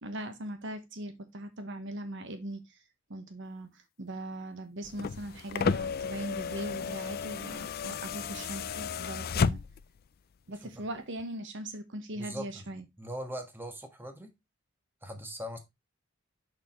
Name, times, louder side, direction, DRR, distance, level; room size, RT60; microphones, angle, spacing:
voice 1, 0.0-2.8 3.1-9.6 10.5-12.8, right 1 dB, 65° right, 1.2 m, -40 dB
sound 1, 4.8-10.0 11.2-11.3, left 5 dB, 50° left, 0.4 m, -33 dB
voice 2, 12.1-12.7 13.0-14.3 15.0-15.6, equal, 10° right, 1.5 m, -40 dB
6.7 x 6.1 x 3.1 m
head